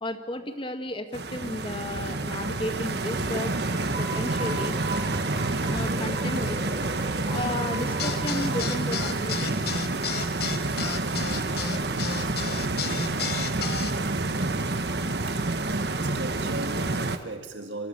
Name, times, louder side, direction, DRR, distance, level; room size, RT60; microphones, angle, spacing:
voice 1, 0.0-3.5 4.0-4.7 5.6-6.6 7.2-9.7, left 1 dB, 30° left, 7 dB, 1.9 m, -33 dB
Stream, 1.1-17.2, right 2 dB, 60° right, 1.3 m, -28 dB
sound 1, 3.1-9.9, right 2 dB, 45° right, 7.5 m, -39 dB
voice 2, 3.8-4.6 5.5-5.7 13.8-14.0 14.9-15.5 15.8-17.9, right 2 dB, 80° right, 5 dB, 1.8 m, -39 dB
sound 2, 8.0-13.9, left 6 dB, 60° left, 1.3 m, -32 dB
25.5 x 16.0 x 8.7 m, 1.3 s
head